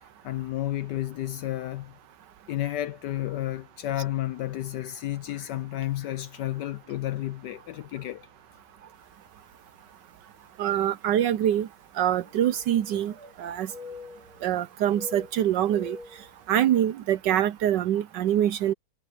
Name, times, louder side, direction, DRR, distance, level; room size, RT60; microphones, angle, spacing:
voice 1, 0.2-1.9 2.5-8.3, left 14 dB, 70° left, 1.1 m, -31 dB
sound 1, 9.3-9.4 10.2-10.3 12.1-13.4 13.7-14.5 14.9-16.3, left 3 dB, 45° right, 3.3 m, -44 dB
voice 2, 10.6-11.7 12.0-13.1 13.4-13.7 14.4-16.0 16.5-18.7, right 11 dB, 70° right, 1.1 m, -24 dB
omnidirectional pair, 2.3 m